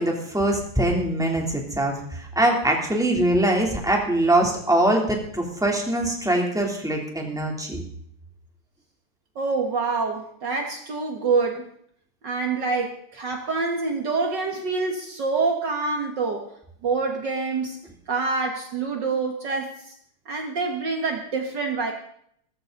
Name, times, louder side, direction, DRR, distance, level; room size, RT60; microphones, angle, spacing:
voice 1, 0.0-7.8, right 1 dB, ahead, 0 dB, 3.0 m, -23 dB
voice 2, 9.4-11.6 12.2-16.4 16.8-17.8 18.1-19.7 20.3-21.9, right 4 dB, 55° right, 3 dB, 2.2 m, -26 dB
18.5 x 15.0 x 4.0 m, 0.66 s
omnidirectional pair, 2.4 m